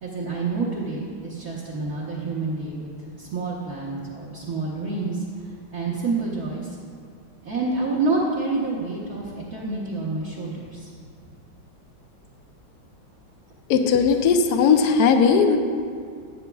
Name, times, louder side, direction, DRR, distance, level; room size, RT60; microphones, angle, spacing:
voice 1, 0.0-2.9 3.2-6.8 7.4-10.9, right 3 dB, 55° right, -6 dB, 1.3 m, -28 dB
voice 2, 13.7-15.6, left 5 dB, 65° left, 6 dB, 1.0 m, -18 dB
12.0 x 8.7 x 2.3 m, 2.2 s
omnidirectional pair, 2.1 m